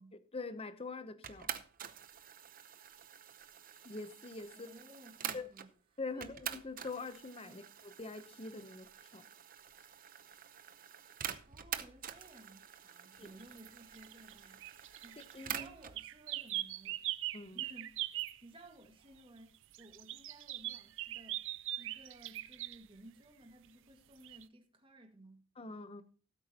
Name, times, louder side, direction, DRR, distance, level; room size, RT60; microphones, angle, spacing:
voice 1, 0.0-1.5 3.8-4.7 5.3-5.5 6.0-9.2 13.2-13.3 15.2-15.7 17.3-17.7 25.6-26.0, left 3 dB, 30° left, 0.8 m, -44 dB
sound 1, 1.2-5.7 6.2-16.0, right 9 dB, 40° right, 0.8 m, -47 dB
voice 2, 4.5-5.7 6.1-6.3 7.4-7.7 11.5-15.2 15.5-17.0 17.5-21.4 21.8-25.5, right 1 dB, 25° right, 1.9 m, -57 dB
sound 2, 13.4-13.7 13.9-18.4 19.7-22.8 24.2-24.4, right 15 dB, 60° right, 0.4 m, -41 dB
18.5 x 8.4 x 2.9 m
head